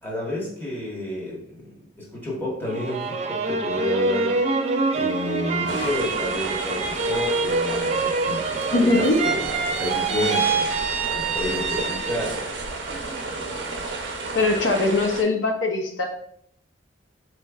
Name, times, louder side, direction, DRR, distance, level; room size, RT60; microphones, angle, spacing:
voice 1, 0.0-4.3 4.9-10.8 11.1-12.4, left 1 dB, 10° left, -6 dB, 1.2 m, -30 dB
sound 1, 2.7-12.5 12.9-13.6, right 4 dB, 35° right, 0.3 m, -26 dB
sound 2, 3.6-6.3, left 2 dB, 70° left, 0.9 m, -38 dB
sound 3, 5.7-15.2, right 3 dB, 80° right, 0.6 m, -32 dB
voice 2, 8.7-9.2 14.3-16.1, left 2 dB, 90° left, 3 dB, 0.6 m, -21 dB
4.2 x 3.1 x 2.3 m, 0.66 s
head